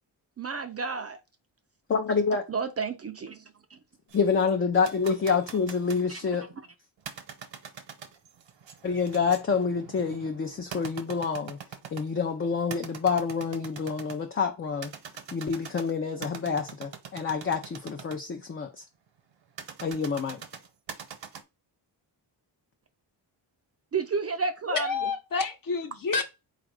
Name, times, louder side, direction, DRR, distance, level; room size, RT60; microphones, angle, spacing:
voice 1, 0.4-1.2 2.5-3.4 3.7-3.8 6.1-6.2 23.9-24.9, right 5 dB, 35° right, 0.4 m, -31 dB
voice 2, 1.9-2.4 4.1-6.5 8.8-11.6 11.9-14.9 15.3-18.8 19.8-20.4, left 5 dB, 30° left, 0.4 m, -27 dB
sound 1, 4.1-6.1 7.0-12.2 12.7-14.2 14.7-18.2 19.6-21.4, right 7 dB, 85° right, 1.0 m, -43 dB
voice 3, 24.7-26.2, left 4 dB, 50° left, 0.9 m, -29 dB
4.3 x 2.5 x 4.7 m
wide cardioid pair, 175°, 44 cm